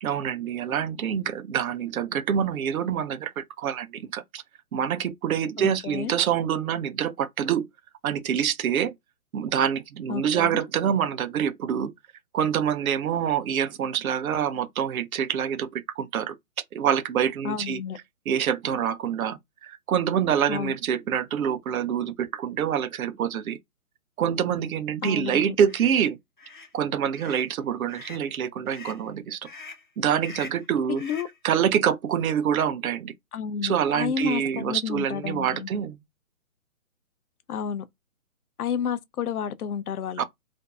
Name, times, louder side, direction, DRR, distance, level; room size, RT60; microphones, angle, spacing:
voice 1, 0.0-4.4 4.7-7.7 8.0-8.9 9.3-11.9 12.3-16.3 16.7-17.8 18.3-23.6 24.2-26.2 26.7-29.4 30.0-31.0 31.4-33.1 33.6-36.0 40.2-40.3, right 8 dB, 70° right, 0.6 m, -26 dB
voice 2, 5.6-6.1 10.1-10.6 17.4-18.0 20.5-20.8 25.0-25.4 30.9-31.3 33.3-35.7 37.5-37.8 38.6-40.2, left 7 dB, 85° left, 0.6 m, -31 dB
sound 1, 25.6-25.9 26.4-26.7 27.1-27.5 27.9-28.3 28.7-29.0 29.4-29.9 30.2-30.7 31.0-31.4, left 4 dB, 40° left, 0.4 m, -43 dB
2.5 x 2.2 x 2.3 m
hypercardioid pair, 160°, 43 cm